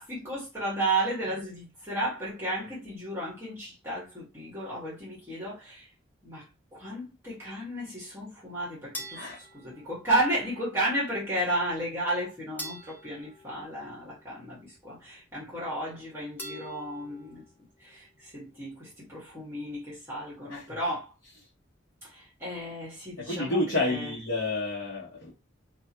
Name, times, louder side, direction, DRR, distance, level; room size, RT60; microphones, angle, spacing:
voice 1, 0.0-5.9 6.2-17.4 17.8-21.1 22.0-24.1, right 1 dB, 10° right, 1.8 m, -33 dB
sound 1, 8.9-10.4 12.6-14.4 16.4-17.5, equal, 10° left, 0.9 m, -44 dB
voice 2, 23.2-25.3, left 2 dB, 70° left, 1.3 m, -30 dB
4.2 x 3.5 x 3.0 m
head